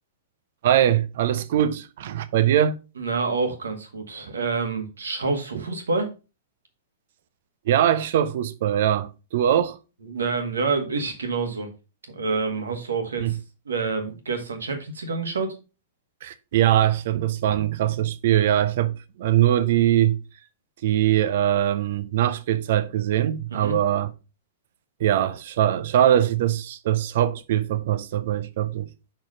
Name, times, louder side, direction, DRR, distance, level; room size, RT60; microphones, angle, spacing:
voice 1, 0.6-2.8 7.7-9.8 13.2-13.3 16.2-20.2 20.8-24.1 25.0-28.9, right 11 dB, 55° right, 0.7 m, -22 dB
voice 2, 3.0-6.1 10.0-11.7 12.1-13.4 13.6-15.6 23.5-23.8, right 4 dB, 70° right, 1.6 m, -27 dB
6.0 x 4.6 x 5.0 m
figure-of-eight pair, 105°, 0 cm